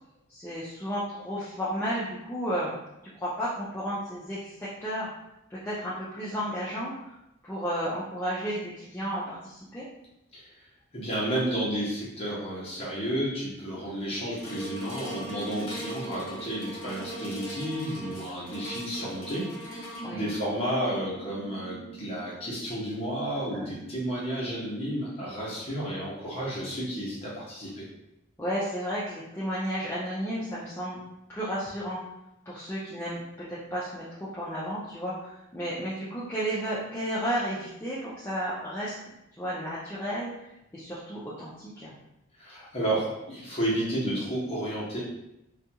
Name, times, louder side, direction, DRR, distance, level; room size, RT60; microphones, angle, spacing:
voice 1, 0.3-2.7 3.2-5.1 5.5-6.9 7.4-9.9 20.0-20.2 23.5-23.8 28.4-31.0 31.3-32.0 32.5-33.2 33.5-38.9 39.4-40.3 40.7-42.0, equal, 10° left, -9 dB, 0.3 m, -32 dB
voice 2, 10.9-19.4 20.1-27.8 42.3-45.0, right 1 dB, 25° left, -7 dB, 0.8 m, -31 dB
sound 1, 14.4-24.8 25.3-25.4, right 2 dB, 75° left, 0.7 m, -41 dB
2.4 x 2.2 x 2.7 m, 0.87 s
head